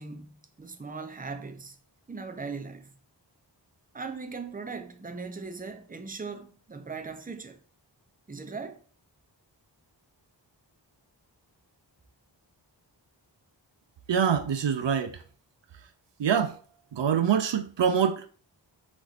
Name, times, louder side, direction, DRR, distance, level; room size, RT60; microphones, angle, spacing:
voice 1, 0.0-1.8 2.1-3.0 3.9-7.6 8.3-8.8, right 4 dB, 20° right, 0.6 m, -39 dB
voice 2, 14.1-15.2 15.7-15.9 16.2-16.6 16.9-18.3, right 7 dB, 70° right, 0.5 m, -25 dB
4.1 x 3.1 x 4.0 m
wide cardioid pair, 55°, 46 cm